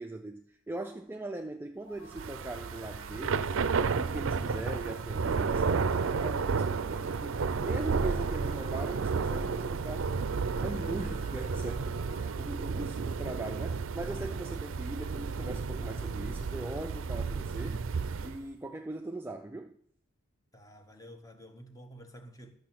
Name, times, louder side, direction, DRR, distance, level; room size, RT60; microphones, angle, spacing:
voice 1, 0.0-3.6 3.9-10.1 10.6-17.8 18.2-19.8, right 2 dB, 10° right, 0.4 m, -40 dB
sound 1, 1.8-12.5, right 1 dB, 70° left, 4.5 m, -53 dB
Thunder / Rain, 2.1-18.4, right 5 dB, 65° right, 0.5 m, -32 dB
voice 2, 20.5-22.5, equal, 15° left, 1.0 m, -50 dB
12.5 x 6.4 x 6.0 m
head